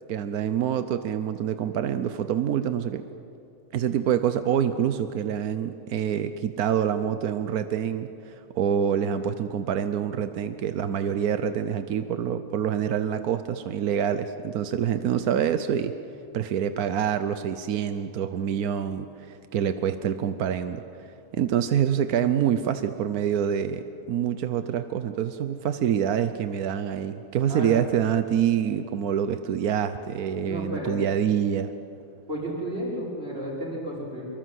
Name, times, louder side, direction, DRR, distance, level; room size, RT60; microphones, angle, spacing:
voice 1, 0.1-3.0 3.7-15.9 16.3-20.8 21.3-31.7, right 9 dB, 90° right, 10 dB, 1.3 m, -26 dB
voice 2, 30.4-31.0 32.3-34.3, equal, 45° right, -4 dB, 6.0 m, -32 dB
25.5 x 23.0 x 7.8 m, 2.7 s
omnidirectional pair, 1.5 m